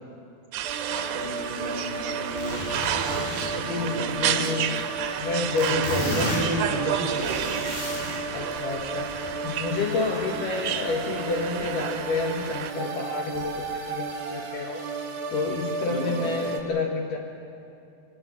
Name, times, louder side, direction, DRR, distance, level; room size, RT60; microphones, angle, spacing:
sound 1, 0.5-12.7, right 10 dB, 85° right, 2.9 m, -31 dB
sound 2, 0.6-16.6, right 3 dB, 60° right, 3.3 m, -34 dB
voice 1, 0.9-4.5 5.7-7.7 10.1-10.2 15.9-16.2, right 1 dB, 35° right, -2 dB, 6.3 m, -34 dB
sound 3, 2.3-5.3 5.6-8.2 8.5-9.9 11.2-11.5 11.9-12.0 12.5-12.6 13.4-13.7, left 1 dB, 85° left, 8.1 m, -35 dB
voice 2, 3.5-4.9 5.2-6.3 8.3-14.8 15.3-17.2, left 4 dB, 65° left, 1 dB, 2.8 m, -29 dB
22.0 x 20.0 x 8.7 m, 2.6 s
omnidirectional pair, 4.5 m